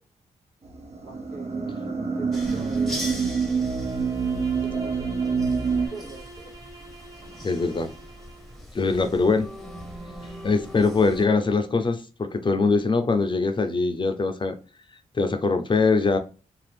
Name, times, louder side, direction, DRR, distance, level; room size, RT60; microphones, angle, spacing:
sound 1, 0.6-5.9, right 5 dB, 50° right, 0.6 m, -26 dB
voice 1, 1.0-3.5 4.6-6.5, right 3 dB, 75° right, 1.0 m, -42 dB
sound 2, 2.3-11.3, equal, ahead, 0.8 m, -41 dB
Bowed string instrument, 3.8-8.7, right 3 dB, 25° right, 1.1 m, -46 dB
voice 2, 7.4-7.9 8.7-9.5 10.4-14.6 15.1-16.2, left 4 dB, 35° left, 0.5 m, -22 dB
2.5 x 2.4 x 3.3 m
cardioid pair, 60°, 14 cm